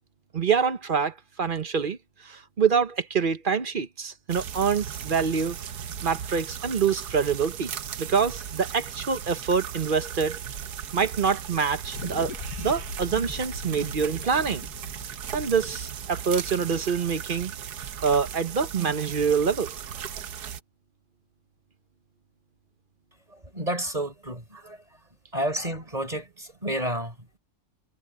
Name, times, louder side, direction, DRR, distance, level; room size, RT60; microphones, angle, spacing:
voice 1, 0.3-2.0 2.2-5.6 6.0-7.7 8.0-10.4 10.9-12.3 12.6-14.7 15.3-17.5 18.0-19.7, right 6 dB, 40° right, 0.9 m, -25 dB
sound 1, 4.3-20.6, right 8 dB, 80° right, 1.5 m, -37 dB
sound 2, 11.9-16.6, left 7 dB, 70° left, 1.6 m, -41 dB
voice 2, 23.3-25.0 25.3-27.4, right 1 dB, 25° right, 4.9 m, -31 dB
omnidirectional pair, 1.7 m